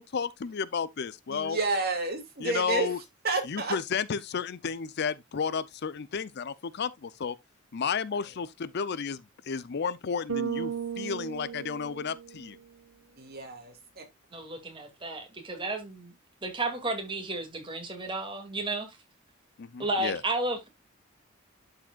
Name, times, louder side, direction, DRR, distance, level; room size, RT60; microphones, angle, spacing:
voice 1, 0.0-1.6 2.4-3.0 3.4-7.4 7.7-12.6 19.6-20.2, left 6 dB, 55° left, 0.5 m, -32 dB
voice 2, 1.3-2.9 3.2-3.8 13.2-14.0, right 3 dB, 50° right, 2.3 m, -30 dB
Bass guitar, 10.3-12.6, right 8 dB, 90° right, 1.1 m, -35 dB
voice 3, 14.3-16.1 16.4-19.0 19.8-20.7, right 2 dB, 25° right, 2.2 m, -33 dB
11.5 x 4.8 x 2.3 m
head